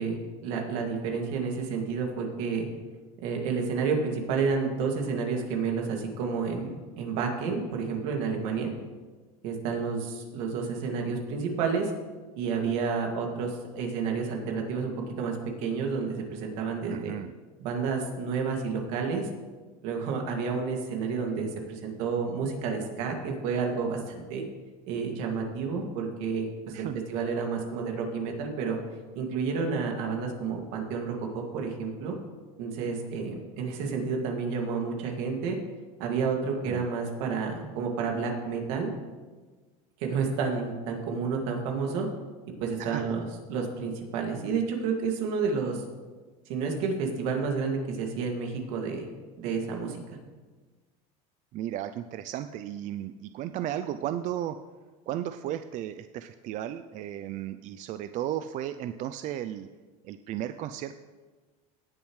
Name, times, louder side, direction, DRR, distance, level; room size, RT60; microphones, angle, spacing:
voice 1, 0.0-2.7 3.2-8.7 9.4-11.9 12.4-17.1 17.6-19.3 19.8-24.4 24.9-28.8 29.1-32.1 32.6-35.6 36.0-38.9 40.0-42.1 42.6-45.8 46.5-49.1 49.4-50.2, right 5 dB, 75° right, 1 dB, 2.3 m, -30 dB
voice 2, 16.9-17.3 26.7-27.0 36.6-36.9 42.8-43.2 51.5-54.6 55.1-59.7 60.0-61.0, right 11 dB, 45° right, 10 dB, 0.4 m, -34 dB
18.0 x 7.0 x 3.2 m, 1.3 s
supercardioid pair, 125°, 18 cm